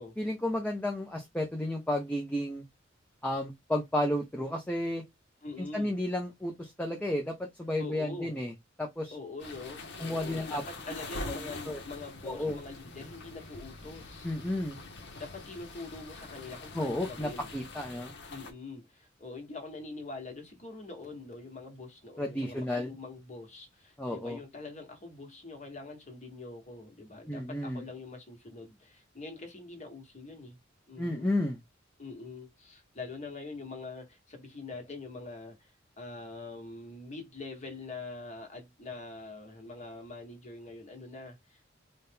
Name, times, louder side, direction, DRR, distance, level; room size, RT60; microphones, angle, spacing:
voice 1, 0.0-2.6 3.2-5.0 5.7-8.5 8.8-9.1 10.0-10.6 11.2-11.8 12.3-12.6 14.2-14.8 16.7-18.1 22.2-22.9 24.0-24.4 27.3-27.8 31.0-31.6, left 1 dB, 10° left, 0.6 m, -32 dB
voice 2, 5.4-5.9 7.8-8.3 9.1-14.3 15.2-17.5 18.3-30.6 30.9-31.3 32.0-41.7, left 3 dB, 35° left, 1.2 m, -44 dB
sound 1, 9.4-18.5, left 3 dB, 60° left, 0.8 m, -44 dB
4.1 x 2.2 x 3.4 m
head